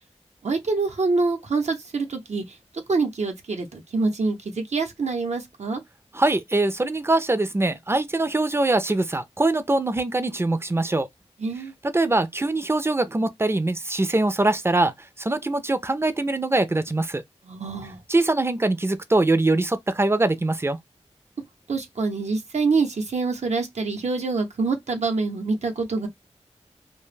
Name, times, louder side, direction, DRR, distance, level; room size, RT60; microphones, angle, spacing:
voice 1, 0.4-2.4 2.9-5.8 11.4-11.7 17.4-18.0 21.7-26.1, right 3 dB, 75° right, 0.7 m, -25 dB
voice 2, 6.1-11.1 11.9-14.9 15.2-17.2 18.1-20.8, right 2 dB, 20° right, 0.5 m, -23 dB
2.2 x 2.0 x 3.1 m
cardioid pair, 45°, 12 cm